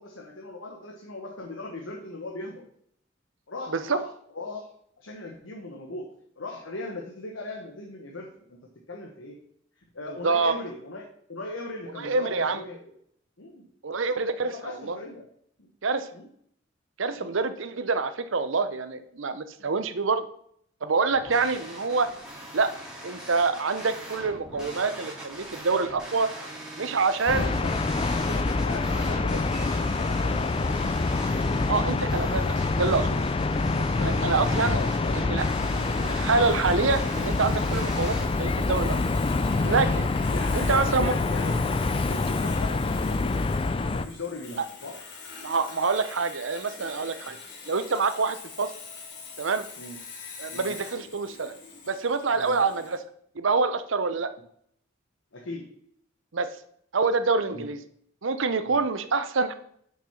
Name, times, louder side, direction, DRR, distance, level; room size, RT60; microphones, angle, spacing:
voice 1, 0.0-2.6 3.5-4.1 4.3-4.7 5.0-6.1 6.4-8.6 8.9-9.4 9.9-12.9 13.4-13.6 14.4-15.3 15.6-15.7 16.1-16.3 17.1-17.3 19.6-19.7 27.3-27.8 28.3-31.2 33.9-35.2 35.5-36.2 40.3-41.6 42.1-45.0 49.8-50.0 50.5-50.7 52.3-52.6 55.3-55.7 57.5-57.7 58.6-58.8, left 2 dB, 75° left, 0 dB, 1.4 m, -39 dB
voice 2, 10.1-10.6 12.0-12.6 13.8-15.0 15.8-16.1 17.0-20.2 20.8-22.1 22.5-22.7 23.0-26.3 26.8-27.5 31.7-33.2 34.0-34.8 35.2-35.5 36.0-39.0 39.6-40.1 40.5-41.1 45.4-47.4 47.7-48.7 49.4-49.7 50.4-51.5 51.9-53.0 53.4-54.3 56.3-56.5 56.9-57.8 58.2-59.5, right 4 dB, 75° right, 12 dB, 0.7 m, -26 dB
sound 1, 21.1-38.3, right 1 dB, 5° right, 2.3 m, -41 dB
sound 2, 27.3-44.1, left 3 dB, 25° left, 0.4 m, -26 dB
Sawing, 35.5-53.0, left 5 dB, 60° left, 1.8 m, -44 dB
6.8 x 6.3 x 5.7 m, 0.67 s
head